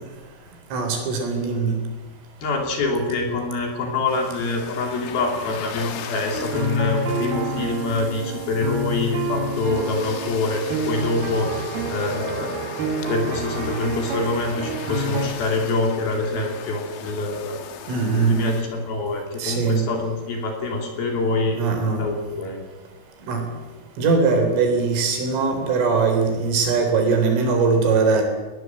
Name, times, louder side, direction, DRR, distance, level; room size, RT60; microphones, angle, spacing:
voice 1, 0.7-1.8 17.9-18.5 19.4-19.9 21.6-22.0 23.3-23.5 24.0-28.2, right 4 dB, 85° right, 5 dB, 6.3 m, -21 dB
voice 2, 2.4-12.5 13.1-17.6 18.2-21.6 21.9-22.6, left 3 dB, 55° left, 2 dB, 4.7 m, -25 dB
sound 1, 4.1-18.6, left 8 dB, 70° left, 4.0 m, -38 dB
sound 2, 6.3-15.3, right 2 dB, 60° right, 3.6 m, -28 dB
20.5 x 20.0 x 7.6 m, 1.2 s
omnidirectional pair, 5.5 m